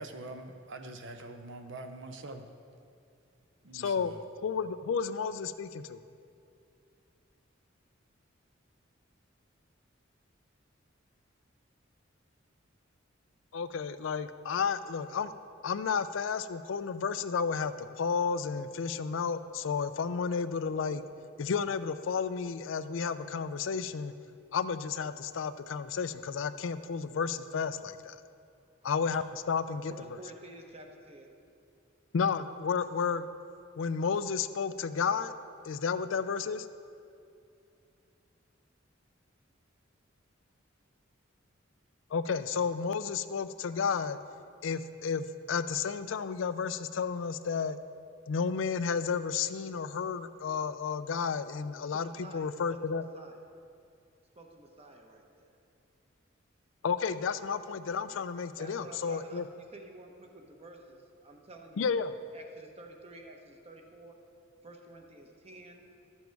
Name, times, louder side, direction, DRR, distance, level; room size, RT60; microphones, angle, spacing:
voice 1, 0.0-2.4 3.6-4.2, right 2 dB, 65° right, 7 dB, 0.7 m, -44 dB
voice 2, 3.7-6.0 13.5-15.3 15.6-21.0 21.4-24.1 24.5-28.2 28.8-29.9 32.1-33.3 33.8-35.3 35.6-36.7 42.1-44.2 44.6-47.8 48.3-53.0 56.8-59.5 61.8-62.1, left 6 dB, 75° left, 13 dB, 0.4 m, -32 dB
voice 3, 29.9-31.3 51.9-53.4 54.4-55.5 58.6-61.9 62.3-64.2 64.6-65.8, right 1 dB, 35° right, 2 dB, 1.0 m, -51 dB
12.5 x 7.2 x 4.6 m, 2.5 s
head